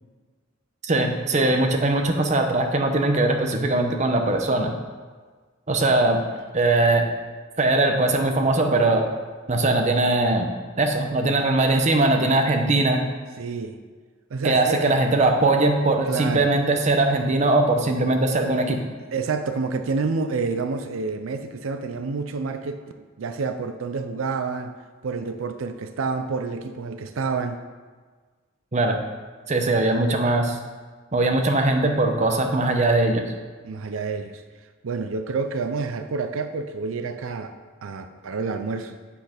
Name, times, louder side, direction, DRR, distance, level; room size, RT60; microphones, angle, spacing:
voice 1, 0.8-4.7 5.7-6.2 6.5-7.0 7.6-9.1 9.5-10.5 10.8-13.1 14.4-18.8 28.7-29.0 29.5-30.6 31.1-33.2, right 2 dB, 35° right, 4 dB, 0.8 m, -20 dB
voice 2, 13.4-13.8 14.3-14.8 16.0-16.5 19.1-22.8 23.2-24.8 25.0-27.6 33.6-34.4 34.8-37.5 37.8-39.0, right 4 dB, 85° right, 8 dB, 0.5 m, -28 dB
8.5 x 5.9 x 5.1 m, 1.5 s
head